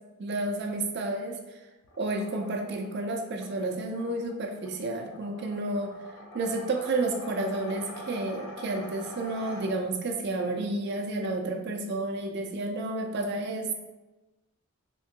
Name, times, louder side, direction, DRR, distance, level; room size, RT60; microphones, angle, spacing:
voice 1, 0.2-1.4 2.0-5.9 6.3-13.8, right 2 dB, 50° right, 3 dB, 0.4 m, -31 dB
sound 1, 1.8-10.1, left 1 dB, 75° left, 0.6 m, -46 dB
3.6 x 2.5 x 2.7 m, 1.1 s
head